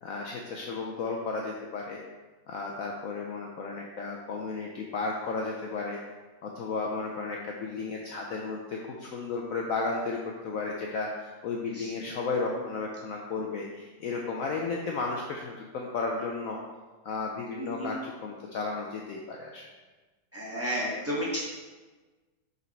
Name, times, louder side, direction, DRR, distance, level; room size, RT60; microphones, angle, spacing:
voice 1, 0.0-2.0 2.5-6.0 6.4-16.6 17.0-19.7, left 4 dB, 65° left, 0 dB, 0.9 m, -33 dB
voice 2, 17.6-17.9 20.3-21.4, equal, 10° right, -6 dB, 1.3 m, -32 dB
5.7 x 4.0 x 4.4 m, 1.3 s
omnidirectional pair, 1.8 m